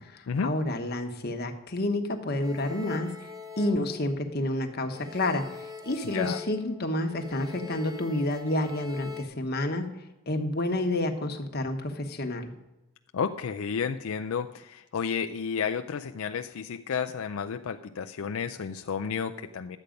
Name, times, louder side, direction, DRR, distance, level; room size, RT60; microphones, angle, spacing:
voice 1, 0.0-3.1 3.6-9.9 10.3-12.5, left 1 dB, 50° left, 5 dB, 1.2 m, -29 dB
sound 1, 2.4-4.6 4.9-9.2, left 5 dB, 20° right, 0.9 m, -43 dB
voice 2, 6.0-6.4 13.1-19.8, left 6 dB, 80° left, 6 dB, 0.4 m, -32 dB
11.5 x 8.3 x 5.2 m, 0.97 s
head